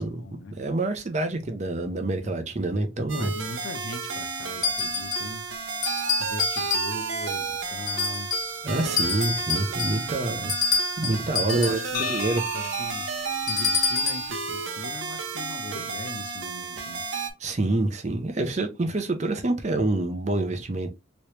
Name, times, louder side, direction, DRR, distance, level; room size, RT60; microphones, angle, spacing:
voice 1, 0.0-0.6 2.2-2.5 3.2-5.5 6.2-8.3 10.3-10.5 11.4-12.0 12.4-13.1 13.5-17.0, left 2 dB, 75° left, 0.6 m, -39 dB
voice 2, 0.6-3.3 8.6-10.5 11.0-12.4 17.4-20.9, right 2 dB, 35° right, 0.6 m, -27 dB
sound 1, 3.1-17.3, right 5 dB, 75° right, 0.7 m, -32 dB
sound 2, 4.6-5.4 5.8-7.2 7.9-8.6 9.0-11.9 13.5-14.3, left 4 dB, 20° left, 0.8 m, -27 dB
sound 3, 11.9-16.0, left 8 dB, 45° left, 0.3 m, -38 dB
3.0 x 3.0 x 3.1 m
head